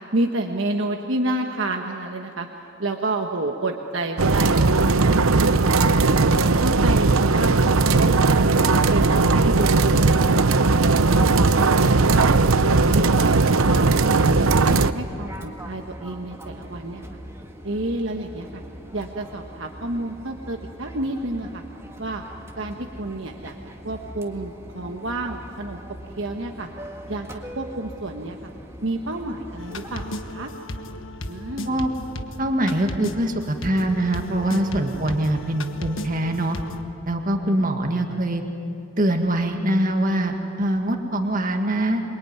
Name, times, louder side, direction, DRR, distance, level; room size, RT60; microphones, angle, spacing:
voice 1, 0.1-2.5 2.8-4.6 4.8-6.2 6.5-8.4 8.7-10.8 11.1-12.2 12.6-17.2 17.6-18.6 18.9-21.6 22.0-22.2 22.6-23.6 23.8-25.8 26.2-26.7 27.0-27.3 27.5-28.4 28.8-30.5 31.3-31.8 34.8-35.0, right 2 dB, 65° right, 2 dB, 1.4 m, -30 dB
sound 1, 4.2-14.9, right 3 dB, 85° right, 0.8 m, -18 dB
Fixed-wing aircraft airplane, 13.4-30.3, equal, 15° right, 1.8 m, -41 dB
sound 2, 29.6-36.8, left 1 dB, 65° left, 1.4 m, -35 dB
voice 2, 32.4-36.6 37.1-38.4 39.0-42.0, right 1 dB, 40° right, 4 dB, 1.9 m, -23 dB
26.5 x 23.0 x 9.5 m, 2.8 s
head